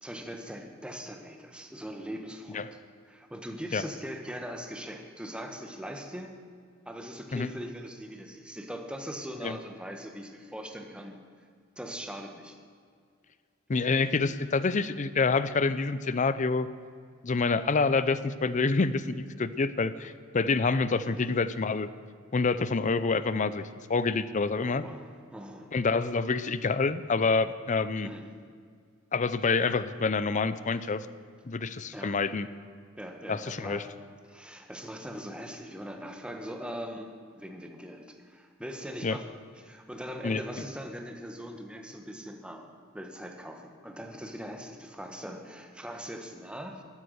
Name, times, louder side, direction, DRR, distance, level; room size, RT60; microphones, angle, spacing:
voice 1, 0.0-2.8 3.1-6.3 6.8-11.2 11.8-12.6 21.0-21.4 24.5-25.7 28.0-28.3 31.9-32.1 32.9-33.9 34.2-42.6 42.9-46.8, equal, 5° right, 3 dB, 1.3 m, -41 dB
voice 2, 13.7-16.7 17.2-21.9 22.3-24.8 25.7-28.1 29.1-31.1 31.4-32.5 33.3-33.8 39.0-39.2 40.2-40.4, left 4 dB, 40° left, 14 dB, 0.5 m, -27 dB
13.0 x 12.5 x 6.5 m, 2.1 s
head